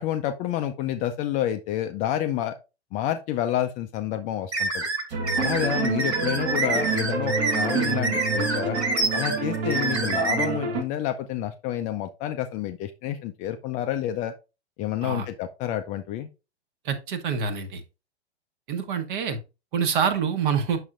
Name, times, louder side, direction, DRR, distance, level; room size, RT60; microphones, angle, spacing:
voice 1, 0.0-2.5 2.9-4.9 5.4-8.8 9.1-14.3 14.8-16.3, left 11 dB, 25° left, 0.4 m, -29 dB
sound 1, 4.5-10.4, right 3 dB, 75° right, 2.4 m, -27 dB
sound 2, 5.1-10.8, right 4 dB, 30° right, 1.1 m, -28 dB
voice 2, 16.8-17.8 18.7-19.4 19.7-20.8, right 6 dB, 50° right, 1.3 m, -26 dB
8.5 x 6.3 x 2.5 m
figure-of-eight pair, 105°, 33 cm